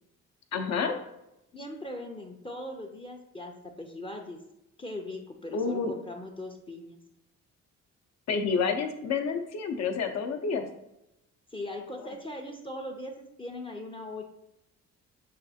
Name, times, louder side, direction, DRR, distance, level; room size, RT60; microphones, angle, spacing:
voice 1, 0.5-1.0 5.5-5.9 8.3-10.7, left 5 dB, 60° left, 6 dB, 0.7 m, -29 dB
voice 2, 1.5-4.4 4.8-7.0 11.5-14.2, left 1 dB, 20° left, 3 dB, 0.5 m, -40 dB
6.4 x 2.4 x 2.7 m, 0.88 s
cardioid pair, 90°, 30 cm